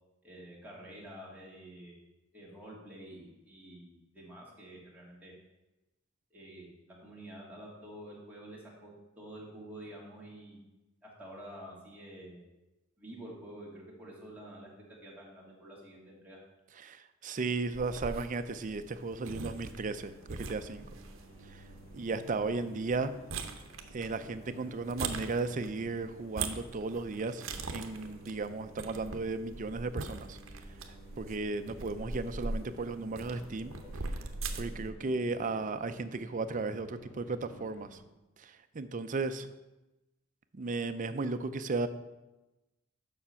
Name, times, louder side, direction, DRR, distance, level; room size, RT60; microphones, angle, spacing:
voice 1, 0.2-1.9 2.3-5.3 6.3-10.6 11.0-12.4 13.0-14.7 15.0-16.4, right 1 dB, 10° right, -5 dB, 2.2 m, -49 dB
voice 2, 16.8-20.9 21.9-23.1 23.9-30.4 31.2-33.7 34.6-38.0 38.4-39.5 40.5-41.9, right 3 dB, 40° right, 10 dB, 0.5 m, -35 dB
sound 1, 17.7-34.9, right 3 dB, 70° right, 0.7 m, -42 dB
sound 2, 19.6-38.0, right 1 dB, 60° left, 2.2 m, -55 dB
7.1 x 5.9 x 5.6 m, 1.0 s
head